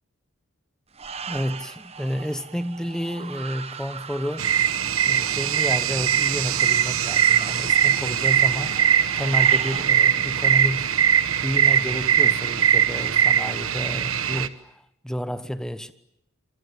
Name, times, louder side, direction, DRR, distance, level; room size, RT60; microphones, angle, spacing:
sound 1, 0.9-9.8, right 6 dB, 30° right, 1.2 m, -39 dB
voice 1, 1.3-4.5 5.1-8.8 9.2-10.9 11.4-14.7 15.0-15.9, equal, 5° left, 1.1 m, -30 dB
sound 2, 4.4-14.5, right 9 dB, 85° right, 1.3 m, -21 dB
25.5 x 25.5 x 8.9 m
head